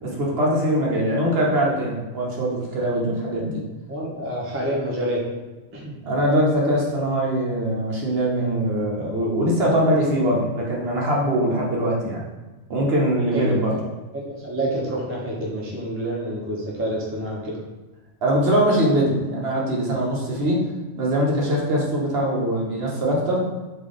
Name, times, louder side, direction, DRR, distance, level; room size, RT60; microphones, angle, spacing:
voice 1, 0.0-3.6 6.0-12.2 12.7-13.7 18.2-20.6 20.9-23.5, right 1 dB, 55° right, -3 dB, 0.9 m, -22 dB
voice 2, 3.9-5.2 5.7-5.9 13.3-13.8 14.1-17.6, right 1 dB, 20° right, -3 dB, 0.4 m, -28 dB
3.3 x 2.5 x 3.7 m, 1.2 s
omnidirectional pair, 1.4 m